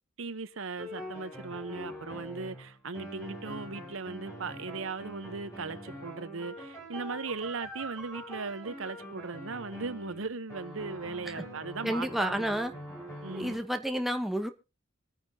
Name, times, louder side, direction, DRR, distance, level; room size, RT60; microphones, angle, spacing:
voice 1, 0.2-12.5 13.2-13.6, right 4 dB, 75° right, 0.9 m, -38 dB
sound 1, 0.8-13.6, equal, 15° left, 5.5 m, -44 dB
voice 2, 11.8-12.7 13.3-14.5, equal, ahead, 0.9 m, -30 dB
25.0 x 9.4 x 2.8 m
head